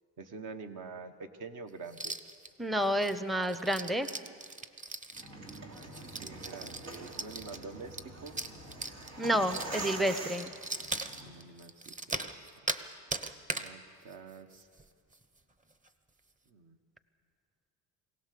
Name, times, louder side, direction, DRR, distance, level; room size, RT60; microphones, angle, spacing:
voice 1, 0.2-2.2 5.7-8.3 10.8-12.5 13.5-14.7 16.5-16.8, right 4 dB, 55° right, 7 dB, 1.4 m, -47 dB
sound 1, 1.9-2.5 2.8-12.8 13.1-13.7 14.1-14.2 14.5-14.8 15.1-15.2 15.7-15.9, right 2 dB, 20° right, 1.0 m, -39 dB
voice 2, 2.6-4.1 9.2-10.5, equal, ahead, 11 dB, 0.7 m, -30 dB
sound 2, 5.1-11.3, right 2 dB, 85° right, 3.3 m, -44 dB
23.0 x 17.0 x 6.8 m, 2.1 s
cardioid pair, 105°, 37 cm